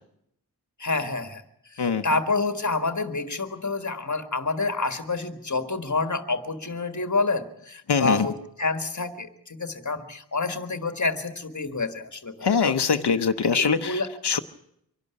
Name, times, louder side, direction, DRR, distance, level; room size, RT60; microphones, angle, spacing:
voice 1, 0.8-1.4 1.7-8.3 8.6-12.7 13.5-14.1, left 3 dB, 45° left, 9 dB, 1.8 m, -28 dB
voice 2, 7.9-8.3 12.4-14.4, left 6 dB, 80° left, 7 dB, 0.9 m, -23 dB
24.5 x 12.0 x 9.7 m, 0.76 s
wide cardioid pair, 80°, 39 cm